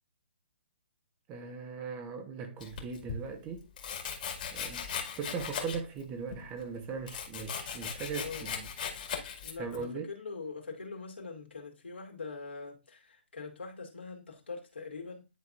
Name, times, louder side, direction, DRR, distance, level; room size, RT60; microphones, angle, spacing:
voice 1, 1.3-3.7 4.5-4.9 5.2-8.7 9.6-10.0, right 5 dB, 20° right, 1.0 m, -39 dB
Domestic sounds home sounds, 2.6-3.2 3.8-6.0 6.3-9.8, left 7 dB, 50° left, 2.0 m, -38 dB
voice 2, 8.2-8.5 9.4-15.3, left 4 dB, 85° left, 2.5 m, -43 dB
10.5 x 4.0 x 2.5 m
hypercardioid pair, 145°, 6 cm